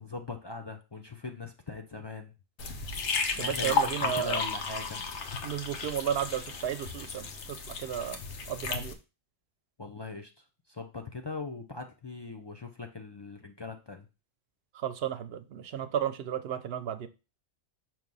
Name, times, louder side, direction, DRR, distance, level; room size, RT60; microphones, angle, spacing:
voice 1, 0.0-2.3 3.3-5.0 9.8-10.3 10.7-14.1, left 3 dB, 40° left, 4 dB, 0.3 m, -40 dB
sound 1, 2.6-8.9, left 4 dB, 75° left, 1.1 m, -33 dB
voice 2, 3.4-4.4 5.4-8.2 8.5-8.9 14.8-17.1, right 10 dB, 65° right, 11 dB, 0.7 m, -33 dB
6.1 x 3.0 x 5.3 m, 0.30 s
omnidirectional pair, 1.2 m